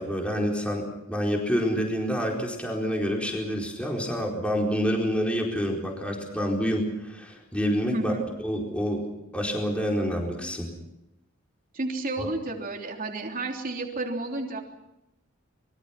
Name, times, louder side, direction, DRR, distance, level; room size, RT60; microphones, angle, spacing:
voice 1, 0.0-8.1 8.4-9.0 9.3-10.7 12.2-12.3, equal, 5° left, 0 dB, 4.5 m, -27 dB
voice 2, 7.9-8.2 11.7-14.6, right 2 dB, 45° right, 1 dB, 3.4 m, -31 dB
26.5 x 23.0 x 6.0 m, 0.88 s
head